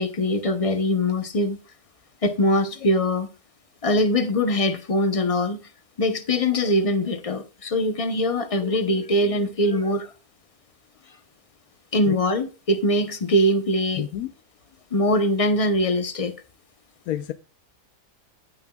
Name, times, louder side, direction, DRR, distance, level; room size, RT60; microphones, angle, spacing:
voice 1, 0.0-1.6 2.2-3.3 3.8-5.7 6.0-10.1 11.9-14.1 14.9-16.3, left 1 dB, 30° left, 0.7 m, -22 dB
voice 2, 14.0-14.3 17.1-17.3, left 13 dB, 80° left, 1.0 m, -29 dB
16.0 x 5.9 x 2.3 m
omnidirectional pair, 1.5 m